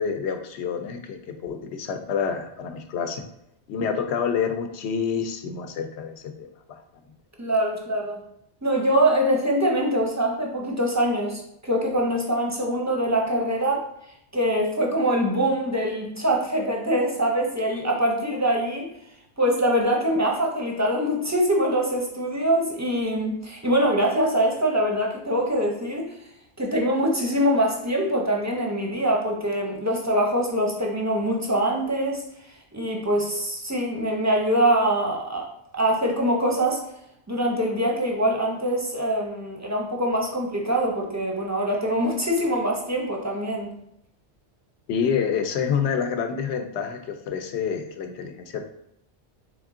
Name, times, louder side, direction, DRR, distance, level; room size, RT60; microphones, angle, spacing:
voice 1, 0.0-3.2 3.7-6.8 44.9-48.7, left 6 dB, 75° left, 6 dB, 0.8 m, -28 dB
voice 2, 7.4-8.2 8.6-13.8 14.3-18.9 19.4-26.1 26.6-32.2 32.7-35.5 35.7-36.8 37.3-43.7, right 1 dB, 20° right, 0 dB, 0.5 m, -24 dB
3.6 x 3.5 x 3.6 m, 0.75 s
omnidirectional pair, 1.2 m